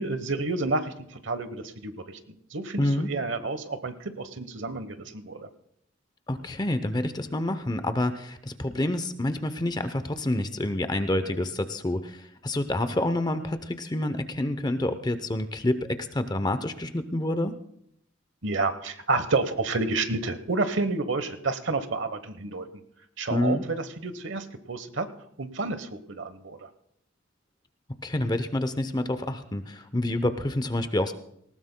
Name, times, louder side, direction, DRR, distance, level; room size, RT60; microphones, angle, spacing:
voice 1, 0.0-5.5 18.4-22.7 23.2-25.1 25.4-26.7, right 3 dB, 70° right, 11 dB, 1.0 m, -30 dB
voice 2, 2.8-3.1 6.3-17.5 23.3-23.6 27.9-31.1, left 1 dB, 20° left, 10 dB, 0.6 m, -28 dB
19.0 x 18.5 x 2.2 m, 0.74 s
head